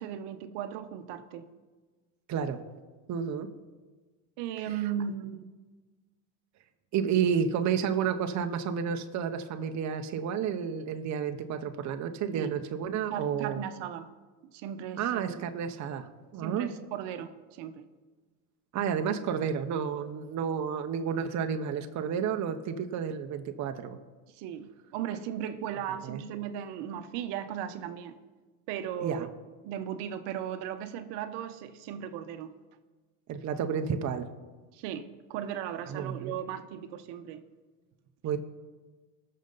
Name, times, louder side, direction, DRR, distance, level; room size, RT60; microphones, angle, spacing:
voice 1, 0.0-1.5 4.4-5.5 12.3-12.5 13.1-14.1 14.5-15.4 16.4-17.8 24.3-28.2 28.7-29.3 29.6-32.5 34.7-37.4, right 9 dB, 60° right, 9 dB, 1.0 m, -37 dB
voice 2, 3.1-3.5 4.7-4.8 6.9-13.6 15.0-16.7 18.7-24.0 26.0-26.2 29.0-29.3 33.3-34.3 35.9-36.3 38.2-38.4, right 7 dB, 35° right, 6 dB, 0.8 m, -31 dB
19.5 x 6.6 x 4.0 m, 1.3 s
supercardioid pair, 105°, 46 cm